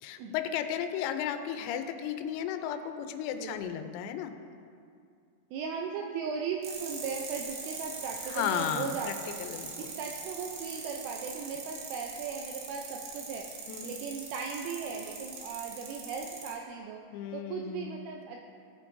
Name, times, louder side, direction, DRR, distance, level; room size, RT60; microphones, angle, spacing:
voice 1, 0.0-4.3 8.3-9.9 13.7-14.0 17.1-17.9, left 9 dB, 90° left, 8 dB, 3.4 m, -34 dB
voice 2, 3.3-3.9 5.5-9.4 9.8-17.0 17.3-18.4, right 5 dB, 85° right, 1 dB, 2.7 m, -37 dB
sound 1, 6.6-16.5, right 4 dB, 70° right, 2.6 m, -42 dB
17.5 x 8.4 x 2.6 m, 2.4 s
omnidirectional pair, 6.0 m